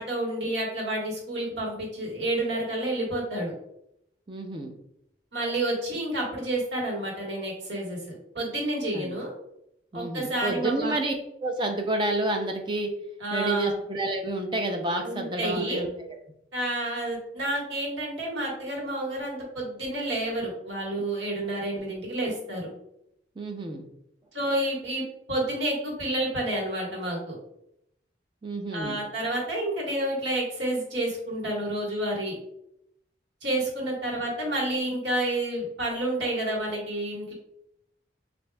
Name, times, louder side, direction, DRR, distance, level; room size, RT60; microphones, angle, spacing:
voice 1, 0.0-3.5 5.3-9.3 9.9-10.9 13.2-13.8 15.0-15.8 16.5-22.7 24.3-25.0 25.3-27.4 28.7-32.3 33.4-37.3, right 1 dB, 80° right, -2 dB, 1.5 m, -29 dB
voice 2, 4.3-4.7 8.9-9.2 9.9-11.1 11.4-12.9 13.3-15.9 23.4-23.9 28.4-29.0, right 2 dB, 25° right, 4 dB, 0.4 m, -29 dB
6.6 x 2.5 x 2.2 m, 0.78 s
head